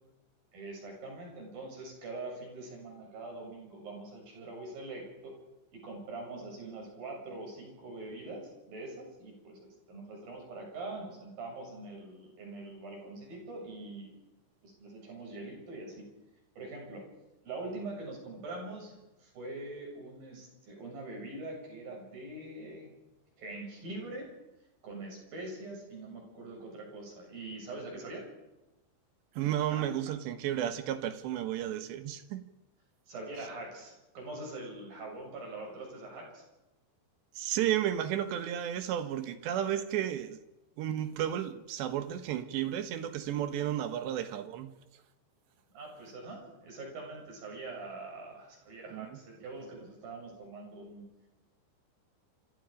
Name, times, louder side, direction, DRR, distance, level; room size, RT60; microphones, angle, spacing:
voice 1, 0.5-5.4 5.7-14.2 14.6-16.1 16.6-17.0 17.4-22.9 23.4-24.3 24.8-28.2 29.7-29.9 33.1-36.4 45.7-51.1, right 2 dB, 50° right, 9.1 m, -43 dB
voice 2, 29.4-32.4 37.4-40.4 40.8-44.7 48.9-49.2, right 11 dB, 75° right, 3.3 m, -33 dB
27.0 x 26.0 x 5.2 m
omnidirectional pair, 5.3 m